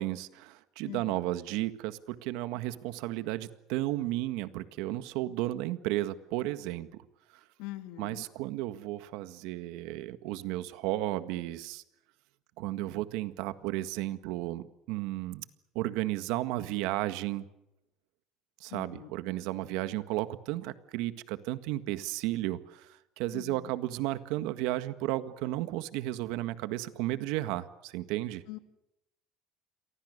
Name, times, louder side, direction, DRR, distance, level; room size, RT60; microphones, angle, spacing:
voice 1, 0.0-7.0 8.0-11.8 12.6-15.4 15.7-17.4 18.6-28.4, right 16 dB, 75° right, 12 dB, 1.7 m, -33 dB
voice 2, 0.8-1.3 7.6-8.2 18.7-19.1 23.3-23.7 28.5-28.6, left 16 dB, 85° left, 9 dB, 2.3 m, -43 dB
29.5 x 23.5 x 6.7 m, 0.87 s
cardioid pair, 175°, 0 cm